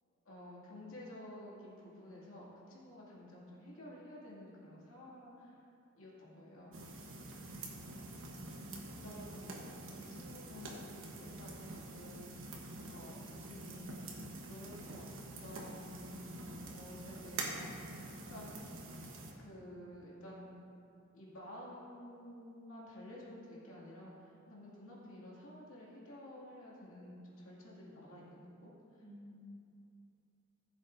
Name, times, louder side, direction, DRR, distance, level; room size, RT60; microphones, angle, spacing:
voice 1, 0.2-5.6 5.9-6.7 9.0-12.5 12.9-15.1 15.4-17.7 18.3-18.6 19.4-20.6 21.1-29.0, left 1 dB, 75° left, -6 dB, 2.4 m, -52 dB
sound 1, 6.7-19.3, right 2 dB, 65° right, 1.2 m, -46 dB
voice 2, 8.6-9.5 29.0-29.6, equal, 5° left, -6 dB, 0.8 m, -53 dB
15.5 x 7.3 x 2.7 m, 2.6 s
head